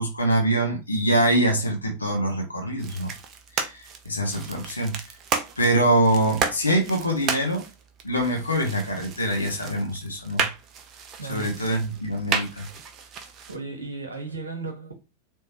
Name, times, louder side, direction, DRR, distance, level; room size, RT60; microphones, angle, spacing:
voice 1, 0.0-3.1 3.5-4.9 5.6-7.6 8.0-10.5 11.2-12.7, right 1 dB, 80° left, 1.1 m, -24 dB
sound 1, 2.8-13.6, right 6 dB, 35° right, 0.8 m, -33 dB
voice 2, 11.2-11.5 13.5-14.9, right 4 dB, 75° right, 1.4 m, -35 dB
4.4 x 3.4 x 3.0 m
figure-of-eight pair, 90°, 0 cm